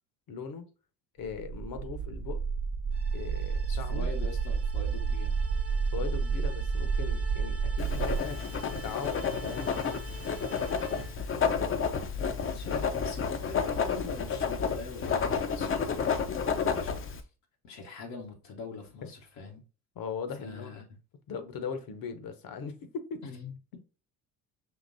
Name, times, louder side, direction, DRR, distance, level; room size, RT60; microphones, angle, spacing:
voice 1, 0.3-0.7 1.2-2.4 3.1-4.1 5.9-8.4 8.8-10.0 11.5-11.8 12.7-12.8 19.0-19.1 20.0-20.7 21.3-23.2, left 6 dB, 50° left, 0.9 m, -39 dB
sound 1, 1.2-8.2, right 5 dB, 60° right, 0.7 m, -30 dB
sound 2, 2.9-11.3, right 3 dB, 30° right, 1.0 m, -49 dB
voice 2, 3.7-5.3 12.5-17.3 17.6-19.6 20.4-20.8 23.2-23.8, left 4 dB, 75° left, 1.1 m, -44 dB
Writing, 7.8-17.2, left 6 dB, 30° left, 0.6 m, -31 dB
5.7 x 2.9 x 2.6 m
hypercardioid pair, 65°, 43 cm